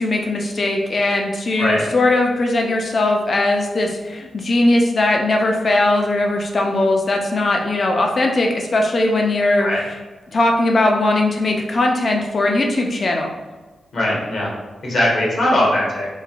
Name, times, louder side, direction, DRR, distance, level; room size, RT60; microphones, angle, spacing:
voice 1, 0.0-10.0 10.3-13.3, left 2 dB, 45° left, 2 dB, 0.5 m, -19 dB
voice 2, 13.9-14.5 14.8-16.1, left 1 dB, 60° left, -4 dB, 0.9 m, -19 dB
3.1 x 2.5 x 2.4 m, 1.2 s
cardioid pair, 100°, 0 cm